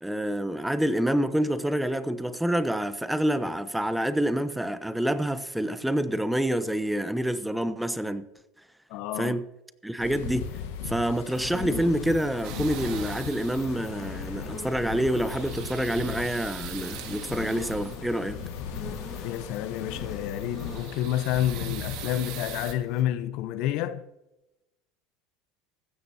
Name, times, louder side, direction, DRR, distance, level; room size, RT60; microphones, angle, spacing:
voice 1, 0.0-8.3 9.2-9.4 9.8-10.5 10.9-18.4, right 1 dB, 5° right, 0.8 m, -27 dB
voice 2, 8.9-9.3 19.2-24.0, left 12 dB, 65° left, 0.8 m, -29 dB
sound 1, 10.0-22.8, left 6 dB, 80° left, 1.3 m, -38 dB
sound 2, 10.3-22.4 22.8-23.0, left 4 dB, 35° left, 2.9 m, -43 dB
sound 3, 12.4-13.8 14.9-18.1 20.2-22.7, right 12 dB, 65° right, 1.8 m, -42 dB
15.5 x 13.0 x 2.8 m
supercardioid pair, 100°, 0 cm